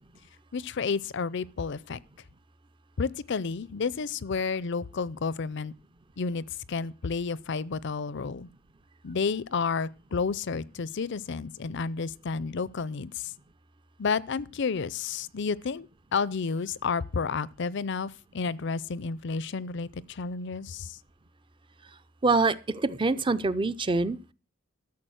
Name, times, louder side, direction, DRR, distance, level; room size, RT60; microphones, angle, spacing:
voice 1, 0.5-2.0 3.0-5.7 6.2-8.5 9.0-13.3 14.0-21.0, left 5 dB, 60° left, 0.5 m, -31 dB
voice 2, 22.2-24.3, right 3 dB, 25° right, 0.6 m, -25 dB
13.5 x 7.2 x 6.3 m
head